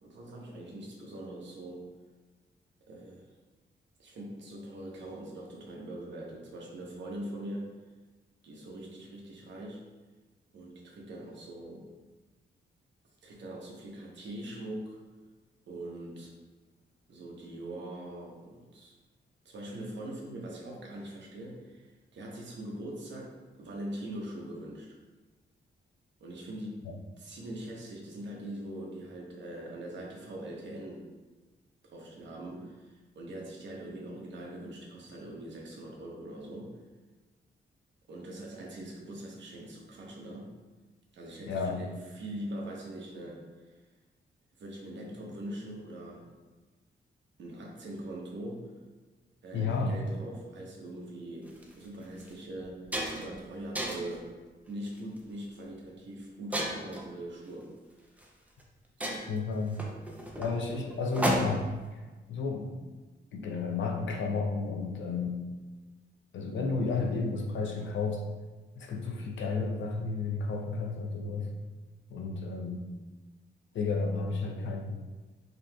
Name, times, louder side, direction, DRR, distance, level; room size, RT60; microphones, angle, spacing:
voice 1, 0.0-1.9 2.9-3.3 4.0-7.7 8.4-9.8 10.5-11.9 13.2-15.0 15.7-16.3 17.1-18.9 19.4-23.3 23.6-25.0 26.2-26.9 27.2-31.1 31.8-36.8 38.1-40.5 41.1-43.5 44.6-46.3 47.4-48.7 49.4-54.3 54.7-57.7 59.0-59.3, right 1 dB, 70° right, -2 dB, 0.9 m, -42 dB
voice 2, 41.5-41.8 49.5-50.0 59.3-59.8 60.4-61.7 62.3-62.7 63.3-65.4 66.3-68.2 68.8-71.5 72.1-72.8 73.7-75.0, left 4 dB, 80° left, 3 dB, 0.6 m, -32 dB
sound 1, 51.5-51.6 52.2-52.3 52.6-53.4 53.8-54.2 54.9-55.2 56.5-57.1 58.2-58.3 58.6-58.7 59.0-61.8, equal, 10° right, 0.5 m, -33 dB
5.1 x 2.9 x 2.3 m, 1.3 s
wide cardioid pair, 115°, 19 cm